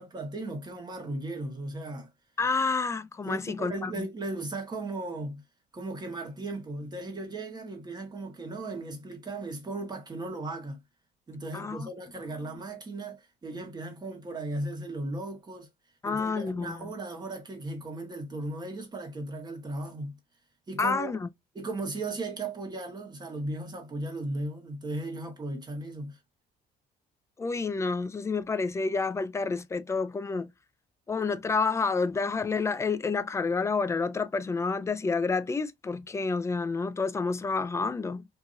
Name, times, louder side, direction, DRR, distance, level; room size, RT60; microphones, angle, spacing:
voice 1, 0.0-2.1 3.2-5.4 5.7-10.8 11.3-15.7 16.0-20.2 20.7-21.2 21.5-26.2, right 2 dB, 25° right, 1.3 m, -36 dB
voice 2, 2.4-3.9 11.5-11.9 16.0-16.9 20.8-21.3 27.4-30.5 31.1-38.2, left 4 dB, 15° left, 0.3 m, -29 dB
2.8 x 2.6 x 2.6 m
cardioid pair, 110°, 17 cm